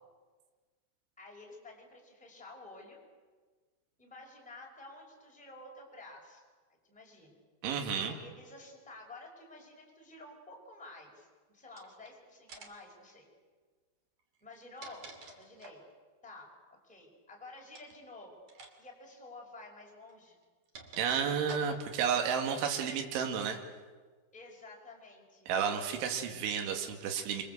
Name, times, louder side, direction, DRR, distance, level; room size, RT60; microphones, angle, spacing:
voice 1, 1.2-3.0 4.0-6.4 6.9-7.4 8.0-13.3 14.4-15.1 15.4-15.8 16.2-16.5 16.8-18.3 18.8-20.4 24.3-25.5, left 2 dB, ahead, -1 dB, 4.9 m, -51 dB
voice 2, 7.6-8.1 21.0-23.7 25.5-27.4, right 7 dB, 75° right, 3 dB, 4.5 m, -32 dB
sound 1, 11.7-12.1 12.5-12.9 14.4-15.9 17.7-18.0 18.5-18.7 19.0-19.1 20.1-22.0, right 3 dB, 40° right, 3.4 m, -50 dB
26.5 x 25.5 x 8.1 m, 1.4 s
omnidirectional pair, 5.7 m